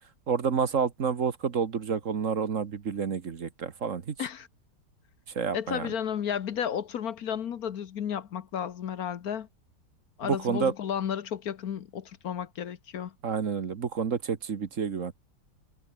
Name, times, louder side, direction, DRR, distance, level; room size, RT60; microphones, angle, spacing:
voice 1, 0.3-4.1 5.3-5.9 10.2-10.7 13.2-15.1, right 6 dB, 50° right, 1.6 m, -29 dB
voice 2, 5.5-9.5 10.2-13.1, left 8 dB, 65° left, 1.4 m, -33 dB
omnidirectional pair, 1.8 m